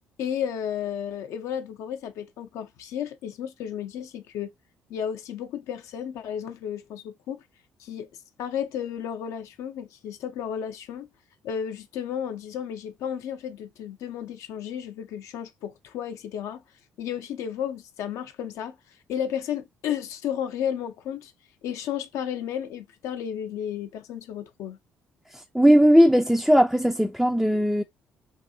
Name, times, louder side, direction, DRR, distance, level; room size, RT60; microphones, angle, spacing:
voice 1, 0.2-4.5 4.9-7.4 7.8-8.1 8.4-11.1 11.4-16.6 17.0-18.8 19.1-21.3 21.6-24.8, left 9 dB, 65° left, 0.5 m, -33 dB
voice 2, 25.5-27.8, equal, ahead, 0.3 m, -18 dB
2.6 x 2.5 x 2.6 m
hypercardioid pair, 50°, 6 cm